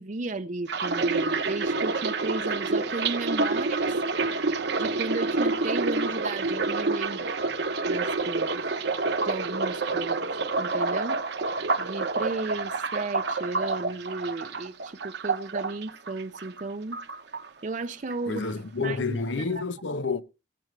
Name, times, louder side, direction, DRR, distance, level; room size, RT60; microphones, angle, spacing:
voice 1, 0.0-4.0 4.8-7.3 7.9-8.6 9.2-10.3 10.6-11.2 11.8-17.0 17.6-18.4 18.8-19.2 19.5-19.6, right 3 dB, 45° right, 0.6 m, -34 dB
sound 1, 0.7-16.6 16.9-17.8 18.1-18.5, right 3 dB, 65° right, 1.0 m, -28 dB
voice 2, 18.3-20.2, left 4 dB, 90° left, 0.8 m, -29 dB
19.0 x 7.7 x 3.3 m
head